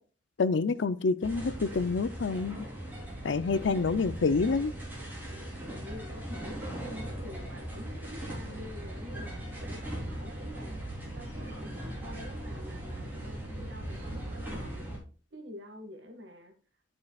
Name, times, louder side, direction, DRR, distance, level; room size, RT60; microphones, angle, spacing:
voice 1, 0.4-2.7 3.2-4.7, left 4 dB, 90° left, 0.5 m, -27 dB
sound 1, 1.2-15.0, right 1 dB, 10° right, 3.3 m, -39 dB
voice 2, 5.7-14.8 15.3-16.6, equal, 75° right, 1.8 m, -47 dB
12.0 x 6.3 x 2.4 m
head